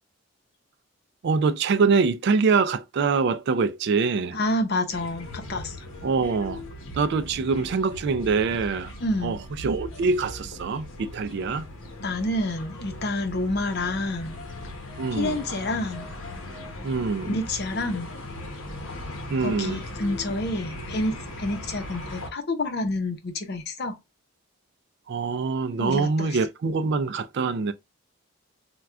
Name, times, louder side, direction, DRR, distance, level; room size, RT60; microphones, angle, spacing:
voice 1, 1.2-4.4 6.0-6.6 6.9-8.9 9.2-11.7 15.0-15.4 16.8-17.3 19.3-19.8 25.1-27.7, right 4 dB, 55° right, 0.3 m, -24 dB
voice 2, 4.3-5.8 9.0-9.4 12.0-14.4 15.1-16.1 17.3-18.1 19.4-24.0 25.8-26.4, left 1 dB, 50° left, 0.7 m, -28 dB
sound 1, 4.9-22.3, left 1 dB, 90° left, 1.0 m, -39 dB
4.4 x 2.3 x 2.3 m
head